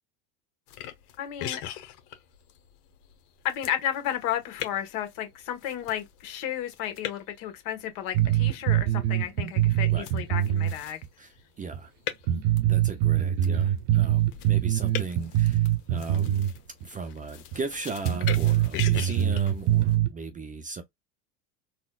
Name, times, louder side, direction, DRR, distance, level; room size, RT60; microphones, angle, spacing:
sound 1, 0.7-20.0, left 11 dB, 85° left, 1.1 m, -41 dB
voice 1, 1.2-1.6 3.4-11.0, left 10 dB, 65° left, 1.4 m, -33 dB
sound 2, 8.1-10.7 11.0-11.1 11.7-11.8 12.3-16.5 16.8-16.9 17.5-17.6 18.0-20.1, right 12 dB, 55° right, 0.8 m, -23 dB
voice 2, 11.2-11.9 12.3-16.5 16.8-20.8, right 4 dB, 20° right, 0.5 m, -37 dB
4.1 x 2.2 x 2.3 m
supercardioid pair, 115°, 46 cm